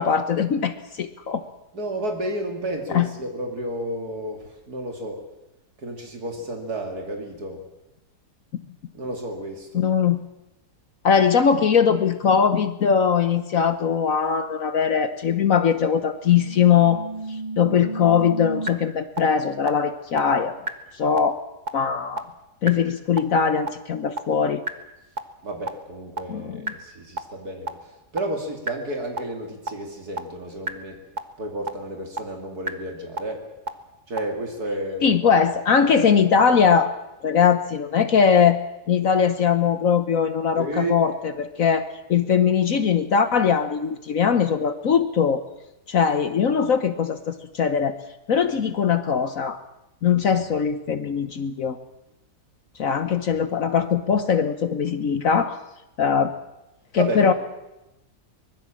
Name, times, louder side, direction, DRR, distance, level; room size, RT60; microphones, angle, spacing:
voice 1, 0.0-1.4 2.9-3.1 8.5-8.6 9.7-10.2 11.0-20.6 20.9-21.4 21.7-22.3 22.6-24.6 26.3-26.7 35.0-36.9 37.2-38.6 38.9-45.4 45.9-47.9 48.3-49.6 50.0-51.8 52.8-55.6 56.0-56.3 56.9-57.3, left 7 dB, 60° left, 10 dB, 1.3 m, -21 dB
voice 2, 1.7-5.2 5.8-7.6 8.9-9.8 25.4-31.0 31.4-33.5 34.1-35.3 40.6-41.0 57.0-57.3, right 1 dB, 70° right, 2 dB, 3.3 m, -31 dB
sound 1, 16.2-18.7 19.2-19.3 19.7-19.8 20.2-20.3 20.7-20.8 21.2-21.3 21.7-21.8 22.2-22.3 22.7-22.8 23.2-23.3 23.7-23.8 24.2-24.3 24.7-24.8 25.2-25.3 25.7-25.8 26.2-26.3 26.7-26.8 27.2-27.3 27.7-27.8 28.2-28.3 28.7-28.8 29.2-29.3 29.7-29.8 30.2-30.3 30.7-30.8 31.2-31.3 31.7-31.8 32.2-32.3 32.7-32.8 33.2-33.3 33.7-33.8 34.2-34.3, right 2 dB, 30° right, 1.4 m, -29 dB
24.0 x 20.5 x 7.5 m, 0.95 s
omnidirectional pair, 1.7 m